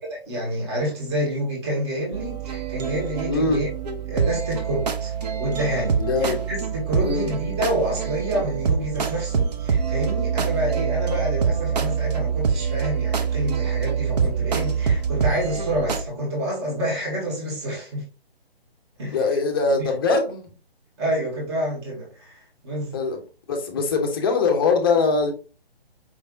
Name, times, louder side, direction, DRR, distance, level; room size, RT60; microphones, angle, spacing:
voice 1, 0.0-3.7 4.1-5.1 5.4-18.0 19.0-19.2 21.0-23.0, right 1 dB, 25° right, 1.6 m, -28 dB
sound 1, 2.1-16.0, right 6 dB, 40° right, 0.6 m, -25 dB
voice 2, 3.3-3.7 6.0-6.5 7.0-7.3 19.1-20.4 22.9-23.2 23.5-25.3, left 4 dB, 25° left, 0.6 m, -22 dB
5.1 x 3.3 x 2.6 m
figure-of-eight pair, 145°, 31 cm